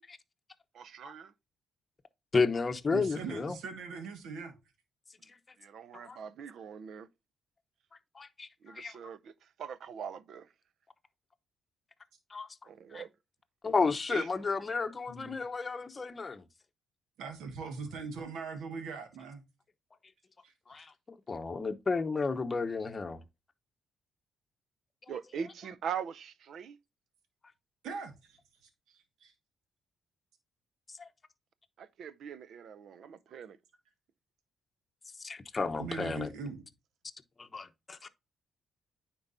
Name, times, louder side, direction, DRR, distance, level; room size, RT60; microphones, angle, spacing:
voice 1, 0.7-1.3 5.6-7.1 8.6-10.5 12.7-13.1 14.1-14.3 25.1-26.8 31.8-33.6, right 7 dB, 65° right, 0.5 m, -42 dB
voice 2, 2.3-3.6 5.3-5.4 5.9-6.2 8.1-9.0 12.3-12.5 12.9-13.0 13.6-16.4 20.7-20.9 21.3-23.2 30.9-31.1 35.2-36.3 37.4-38.1, left 4 dB, 30° left, 0.8 m, -32 dB
voice 3, 2.9-4.5 15.1-15.3 17.2-19.4 20.4-20.8 27.8-28.4 28.9-29.3 35.8-36.6, right 5 dB, 85° right, 1.4 m, -41 dB
9.5 x 4.6 x 2.6 m
cardioid pair, 90°, 0 cm